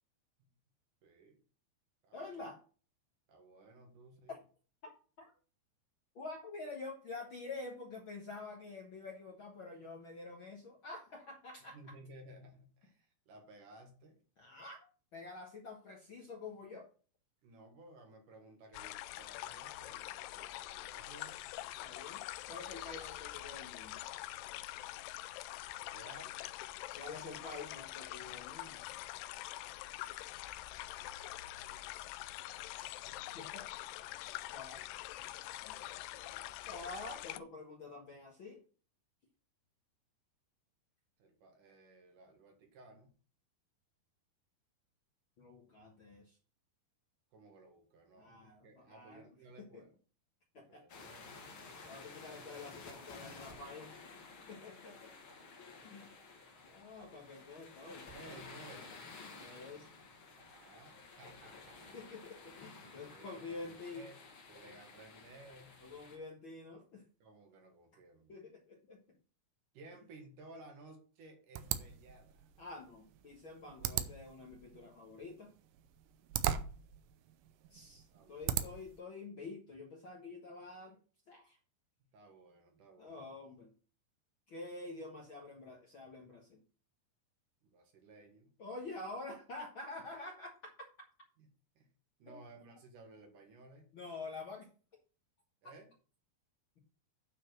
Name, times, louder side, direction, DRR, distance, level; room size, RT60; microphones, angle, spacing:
voice 1, 1.0-1.4 2.0-2.4 3.3-4.4 11.7-14.2 17.4-21.4 25.9-26.4 31.6-31.8 34.8-34.9 35.7-36.5 41.2-43.1 47.3-49.9 50.6-51.4 54.7-54.8 55.2-55.3 55.8-56.2 58.1-59.0 60.4-62.0 63.1-64.2 64.5-65.8 67.2-68.4 69.7-72.5 77.6-77.8 78.1-78.8 82.0-83.3 87.6-88.5 91.4-91.5 91.8-91.9 92.2-93.9 95.6-95.9, right 2 dB, 60° right, 3 dB, 2.8 m, -57 dB
voice 2, 2.1-2.6 4.3-4.4 4.8-4.9 5.2-5.3 6.1-11.8 14.4-16.9 21.8-22.2 22.5-24.0 27.0-28.8 33.3-33.7 34.5-34.9 35.6-35.8 36.6-38.6 45.4-46.4 48.2-49.2 49.7-49.8 50.5-51.0 51.8-53.9 54.5-55.1 55.8-56.1 56.7-58.1 59.4-59.9 61.9-64.0 65.8-67.0 68.3-69.0 72.6-75.5 77.7-81.0 81.3-81.6 83.0-83.7 84.5-86.6 88.6-90.5 92.3-92.4 93.9-94.7, left 3 dB, 70° left, 0 dB, 1.1 m, -48 dB
sound 1, 18.7-37.4, left 15 dB, 90° left, 2.6 m, -45 dB
sound 2, 50.9-66.2, left 4 dB, 45° left, 1.8 m, -53 dB
sound 3, 71.5-79.0, right 10 dB, 80° right, 2.0 m, -40 dB
9.1 x 4.5 x 6.5 m, 0.38 s
omnidirectional pair, 4.6 m